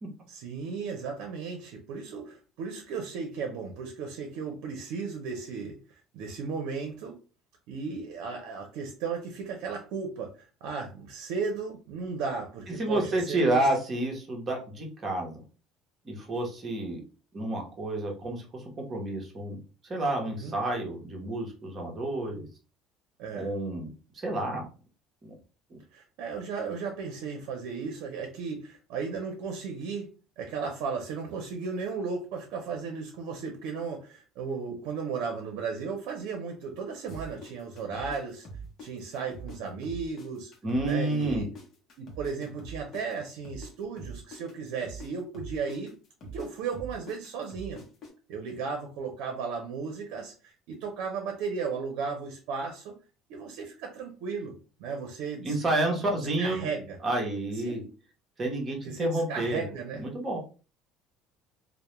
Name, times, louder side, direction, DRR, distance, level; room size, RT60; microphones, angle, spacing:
voice 1, 0.3-5.8 6.1-7.1 7.7-13.6 20.3-20.6 23.2-23.5 25.9-30.1 30.4-38.5 38.8-40.5 40.8-41.5 42.0-45.9 46.2-47.8 48.3-52.9 53.3-54.5 54.8-55.6 56.0-57.0 57.5-57.9 58.8-60.0, right 5 dB, 75° right, 3 dB, 0.5 m, -35 dB
voice 2, 12.8-15.4 16.0-17.0 17.3-19.6 19.8-22.4 23.3-23.9 24.1-24.7 25.2-25.3 25.7-25.8 40.6-41.5 55.4-56.7 57.0-57.8 58.4-59.6 60.0-60.4, right 1 dB, 25° right, 0 dB, 0.8 m, -29 dB
sound 1, 37.1-39.6 39.8-43.7 44.0-48.1, right 3 dB, 40° left, 0.7 m, -43 dB
2.2 x 2.0 x 3.0 m, 0.36 s
cardioid pair, 155°, 0 cm